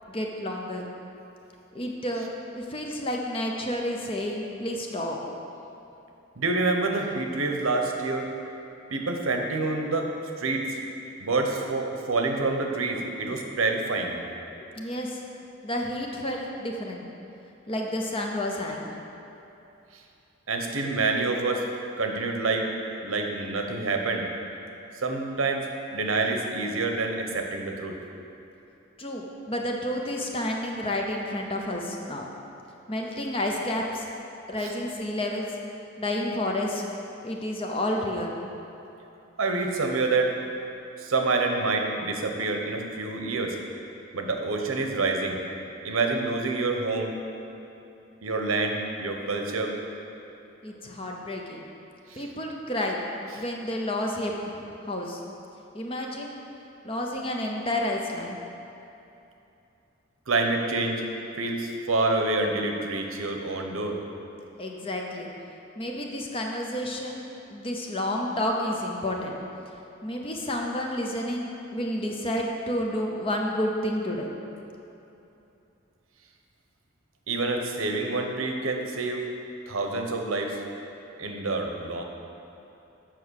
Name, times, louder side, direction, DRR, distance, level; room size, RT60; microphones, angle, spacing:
voice 1, 0.1-0.9 1.7-5.2 14.8-15.2 15.6-17.1 17.7-18.9 29.0-32.3 32.9-34.1 34.5-35.5 36.0-36.8 37.2-38.4 50.6-51.6 52.2-53.0 53.3-55.2 55.7-56.4 56.8-58.4 64.6-65.3 65.8-67.2 67.5-69.4 70.0-74.3, left 1 dB, 25° left, 0 dB, 0.7 m, -30 dB
voice 2, 6.4-8.3 8.9-10.1 10.4-10.7 11.2-14.2 20.5-21.6 22.0-22.7 23.0-24.2 25.0-25.7 25.9-28.0 34.6-34.7 39.4-40.3 41.0-43.6 44.1-45.4 45.8-47.1 48.2-49.7 52.1-52.2 60.3-61.0 61.4-64.0 77.3-79.2 79.7-80.6 81.2-82.0, right 3 dB, 85° right, 3 dB, 0.9 m, -27 dB
7.6 x 5.8 x 6.5 m, 2.8 s
head